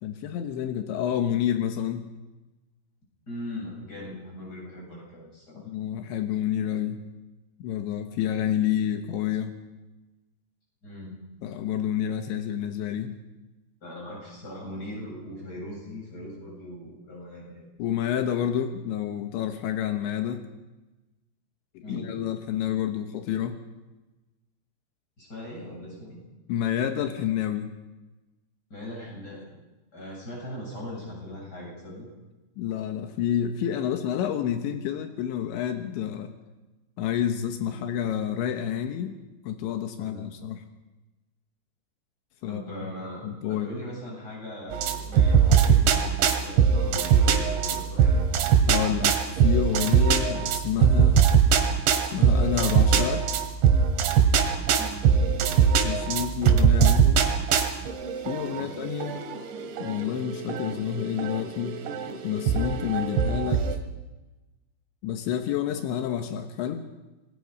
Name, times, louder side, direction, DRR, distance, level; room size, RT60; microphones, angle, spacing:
voice 1, 0.0-2.1 5.7-7.0 7.6-9.6 11.4-13.2 17.8-20.4 21.8-23.6 26.5-27.8 32.6-36.3 37.0-39.2 39.5-40.6 42.4-42.6 43.2-43.7 48.6-51.3 52.1-53.3 55.7-57.3 58.3-59.3 59.8-61.8 62.2-63.7 65.0-66.9, left 9 dB, 85° left, 6 dB, 3.5 m, -29 dB
voice 2, 3.3-5.6 10.8-11.2 13.8-17.6 21.8-22.2 25.2-26.2 28.7-29.5 29.9-32.1 40.0-40.3 42.5-48.2 54.8-55.2 58.5-58.8, left 1 dB, 20° left, -3 dB, 8.5 m, -40 dB
sound 1, 44.7-63.7, right 7 dB, 90° right, 4.1 m, -22 dB
27.0 x 20.0 x 5.4 m, 1.1 s
omnidirectional pair, 5.2 m